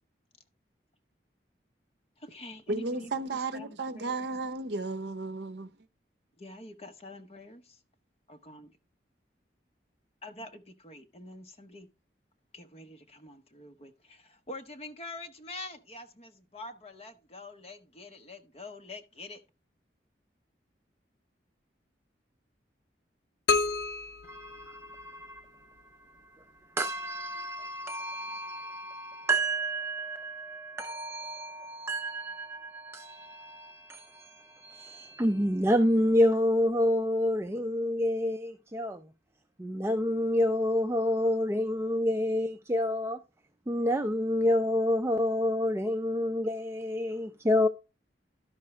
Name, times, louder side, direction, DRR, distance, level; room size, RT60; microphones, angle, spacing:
voice 1, 2.2-4.2 6.4-7.8 8.3-8.7 10.2-11.9 12.5-19.4, left 2 dB, 35° left, 0.9 m, -46 dB
voice 2, 2.7-5.7, right 3 dB, 65° right, 0.7 m, -34 dB
sound 1, 23.5-25.4, left 4 dB, 75° left, 0.5 m, -30 dB
voice 3, 24.2-26.5 26.7-39.1 39.6-43.2 43.7-47.7, left 1 dB, 15° right, 0.4 m, -29 dB
12.0 x 5.9 x 3.2 m
head